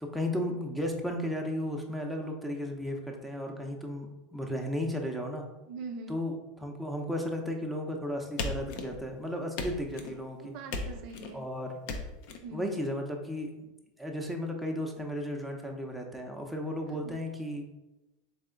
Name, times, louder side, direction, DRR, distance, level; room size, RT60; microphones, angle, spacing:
voice 1, 0.0-5.5 6.1-6.3 6.6-10.5 11.3-11.7 12.5-13.7 14.0-17.7, left 1 dB, ahead, 1 dB, 0.7 m, -34 dB
voice 2, 5.7-6.2 10.4-11.4 12.4-12.8 16.9-17.2, right 4 dB, 60° right, 5 dB, 0.5 m, -43 dB
sound 1, 8.4-9.2 9.6-10.2 10.7-11.3 11.9-12.4, left 3 dB, 65° left, 0.6 m, -36 dB
3.6 x 3.3 x 3.8 m, 1.0 s
hypercardioid pair, 105°, 0 cm